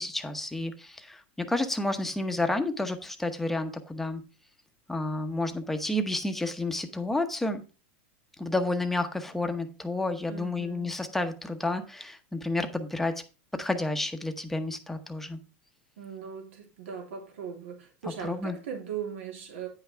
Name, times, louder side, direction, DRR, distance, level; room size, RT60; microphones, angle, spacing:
voice 1, 0.0-4.2 4.9-7.6 8.4-13.2 13.5-15.4 18.2-18.6, left 2 dB, 5° left, 0.9 m, -30 dB
voice 2, 10.3-11.0 16.0-19.7, right 7 dB, 85° right, 3.2 m, -39 dB
9.5 x 5.7 x 4.4 m
supercardioid pair, 155°, 7 cm